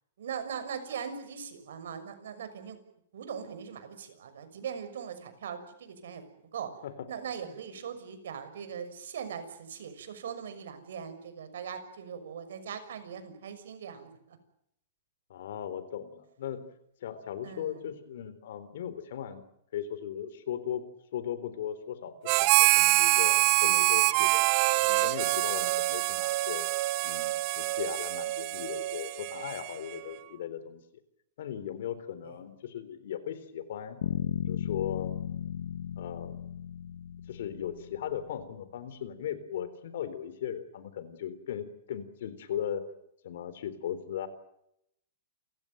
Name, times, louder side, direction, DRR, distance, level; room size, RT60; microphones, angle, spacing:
voice 1, 0.2-2.8 3.1-6.2 6.5-6.7 7.1-14.4 17.4-17.9 24.1-24.3 32.2-32.3, right 7 dB, 75° right, 9 dB, 6.2 m, -40 dB
voice 2, 15.3-16.6 17.0-19.4 19.7-20.8 21.1-24.5 24.7-26.7 27.0-30.8 31.4-34.0 34.5-35.2 36.0-36.5 37.3-42.8 43.2-44.3, left 9 dB, 65° left, 14 dB, 3.8 m, -37 dB
Harmonica, 22.3-30.0, right 20 dB, 35° right, 0.9 m, -25 dB
sound 1, 34.0-38.0, left 9 dB, 80° left, 1.1 m, -35 dB
29.5 x 16.0 x 9.2 m, 0.78 s
hypercardioid pair, 160°, 0 cm